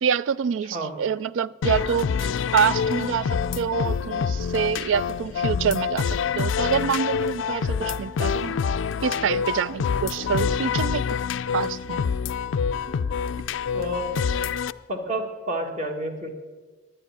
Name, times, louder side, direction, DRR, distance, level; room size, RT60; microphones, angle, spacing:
voice 1, 0.0-6.1 6.4-8.6 9.0-11.0 11.5-12.0, right 7 dB, 75° right, 0.3 m, -26 dB
sound 1, 1.6-14.7, left 6 dB, 75° left, 0.4 m, -26 dB
voice 2, 13.7-14.1 14.9-16.3, right 1 dB, 40° right, 1.7 m, -30 dB
10.5 x 10.0 x 8.9 m
head